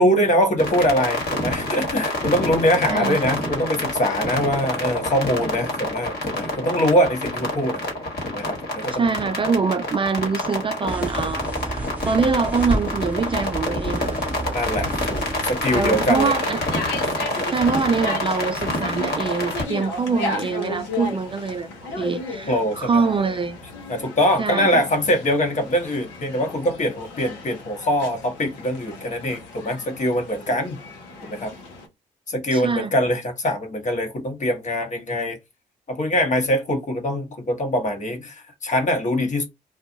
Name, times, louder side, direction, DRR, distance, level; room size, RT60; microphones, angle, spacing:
voice 1, 0.0-7.8 8.3-9.0 14.5-16.3 17.2-17.5 22.5-22.9 23.2-23.3 23.9-30.8 31.2-31.5 32.3-35.4 35.9-39.5, equal, 40° left, 1.1 m, -23 dB
sound 1, 0.6-19.6, left 1 dB, 60° left, 1.3 m, -27 dB
voice 2, 8.9-14.2 15.7-16.6 17.5-21.7 22.0-23.6 24.4-24.8 32.5-32.9, right 5 dB, 30° right, 0.4 m, -24 dB
sound 2, 10.9-16.6, right 2 dB, 10° right, 0.8 m, -31 dB
sound 3, 14.6-31.9, left 2 dB, 75° left, 0.8 m, -35 dB
2.3 x 2.3 x 2.7 m
hypercardioid pair, 40°, 19 cm